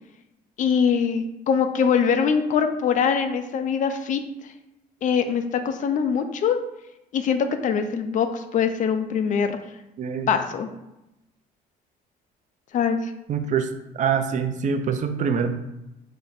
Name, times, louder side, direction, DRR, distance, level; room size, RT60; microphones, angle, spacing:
voice 1, 0.6-4.2 5.0-6.6 7.1-9.6 10.3-10.7 12.7-13.1, left 6 dB, 50° left, 8 dB, 0.4 m, -23 dB
voice 2, 10.0-10.3 13.3-13.7 13.9-15.6, right 6 dB, 45° right, 7 dB, 0.5 m, -24 dB
4.2 x 2.1 x 3.9 m, 0.90 s
cardioid pair, 110°, 17 cm